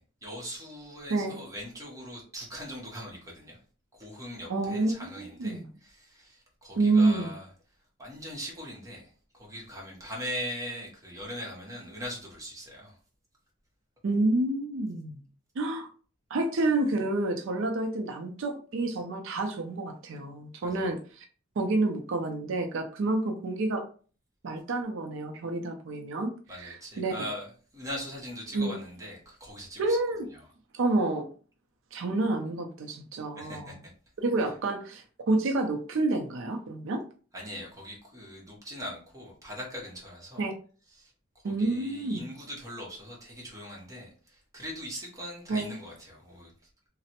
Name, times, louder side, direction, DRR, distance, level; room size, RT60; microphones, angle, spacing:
voice 1, 0.0-3.6 3.9-7.5 8.0-13.0 20.6-20.9 26.5-30.0 30.3-30.4 33.4-33.9 37.3-40.4 40.9-46.5, equal, 15° right, 0.9 m, -41 dB
voice 2, 4.5-5.6 6.8-7.3 14.0-15.2 15.6-15.9 16.3-21.2 21.6-23.9 24.4-26.3 26.6-27.1 28.5-28.7 29.8-30.3 30.7-31.3 31.9-33.8 34.2-37.0 40.4-40.5 41.4-42.2 45.5-45.7, right 2 dB, 65° right, 0.4 m, -28 dB
3.1 x 2.0 x 2.8 m
head